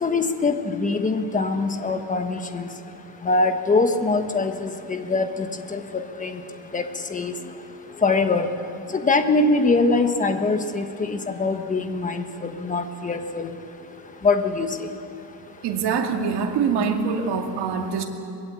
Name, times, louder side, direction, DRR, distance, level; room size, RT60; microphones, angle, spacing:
voice 1, 0.0-2.7 3.2-6.4 6.7-6.8 7.1-7.3 8.0-8.5 8.9-13.5 14.2-14.7, left 3 dB, 20° left, 7 dB, 1.3 m, -23 dB
voice 2, 15.6-18.1, right 6 dB, 80° right, 3 dB, 2.5 m, -24 dB
23.0 x 21.5 x 8.5 m, 2.7 s
cardioid pair, 175°, 39 cm